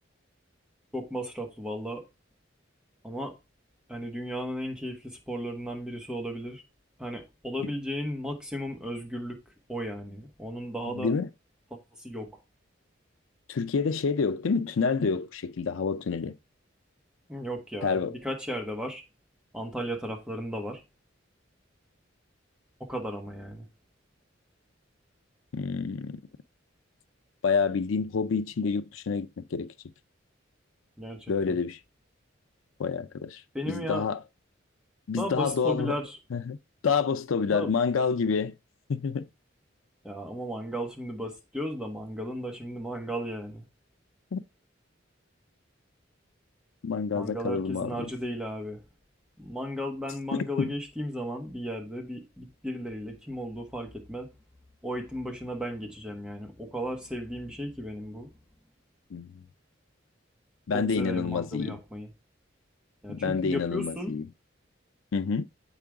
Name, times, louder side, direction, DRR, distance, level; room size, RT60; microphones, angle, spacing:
voice 1, 0.9-2.0 3.0-3.3 3.9-6.6 7.0-9.4 9.7-11.1 12.0-12.3 17.3-19.0 19.5-20.8 22.8-23.7 31.0-31.6 33.5-34.1 35.2-36.2 37.5-37.7 40.0-43.7 47.1-48.8 49.4-54.3 54.8-58.3 60.7-62.1 63.0-64.2, equal, 5° right, 1.3 m, -35 dB
voice 2, 10.9-11.3 13.5-16.4 17.8-18.2 25.5-26.2 27.4-29.7 31.3-31.8 32.8-34.2 35.1-35.9 36.3-36.6 36.8-38.5 38.9-39.3 44.3-44.4 46.8-48.1 50.3-50.7 59.1-59.4 60.7-61.8 63.1-64.3 65.1-65.4, left 5 dB, 85° left, 0.5 m, -28 dB
7.7 x 5.0 x 3.5 m
head